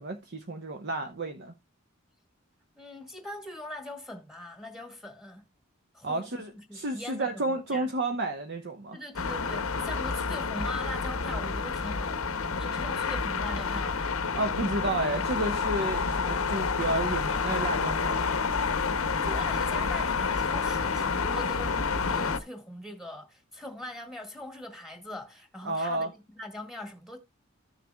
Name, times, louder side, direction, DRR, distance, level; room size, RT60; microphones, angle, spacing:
voice 1, 0.0-1.5 6.0-9.0 14.2-18.3 25.6-26.1, right 2 dB, 55° right, 0.9 m, -31 dB
voice 2, 2.8-5.4 5.9-7.9 8.9-14.2 19.2-26.1 26.4-27.2, left 1 dB, ahead, 1.6 m, -41 dB
sound 1, 9.2-22.4, left 5 dB, 80° left, 0.8 m, -29 dB
14.5 x 6.6 x 2.2 m
head